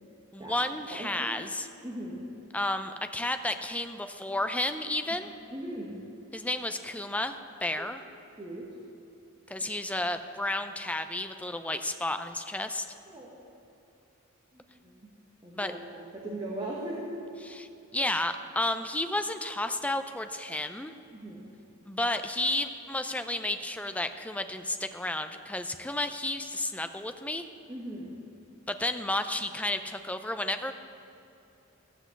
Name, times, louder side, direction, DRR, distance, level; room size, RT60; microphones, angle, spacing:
voice 1, 0.3-1.7 2.5-5.3 6.3-8.0 9.5-12.9 15.5-15.7 17.5-20.9 21.8-27.5 28.7-30.7, left 1 dB, 5° left, 8 dB, 0.5 m, -32 dB
voice 2, 1.8-2.2 5.5-6.0 7.7-7.8 8.4-8.7 9.6-9.7 13.1-13.3 14.5-15.1 15.4-17.2 21.1-21.5 27.7-28.2, right 1 dB, 20° right, -3 dB, 1.4 m, -39 dB
14.0 x 6.1 x 8.2 m, 2.8 s
head